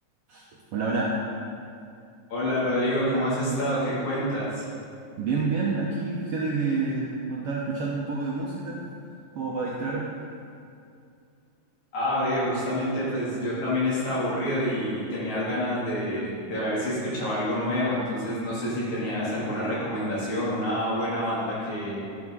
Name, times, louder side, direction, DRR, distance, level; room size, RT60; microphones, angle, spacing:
voice 1, 0.7-1.1 5.2-8.8 9.3-10.1, right 4 dB, 75° right, -4 dB, 1.4 m, -28 dB
voice 2, 2.3-4.7 11.9-22.0, equal, 70° left, -8 dB, 3.6 m, -27 dB
11.5 x 6.2 x 3.6 m, 2.5 s
omnidirectional pair, 3.5 m